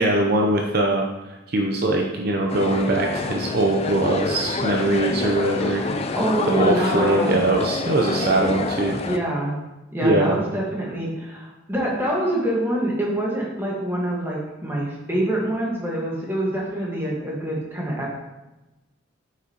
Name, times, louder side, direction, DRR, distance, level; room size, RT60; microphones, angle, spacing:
voice 1, 0.0-5.8 6.5-9.0 10.0-10.4, right 2 dB, 50° right, 0 dB, 0.6 m, -22 dB
sound 1, 2.5-9.2, left 3 dB, 30° left, 0.3 m, -27 dB
voice 2, 5.6-5.9 6.1-7.4 9.0-9.6 9.9-18.1, right 1 dB, 10° right, -4 dB, 1.4 m, -26 dB
7.8 x 5.9 x 2.9 m, 1.0 s
head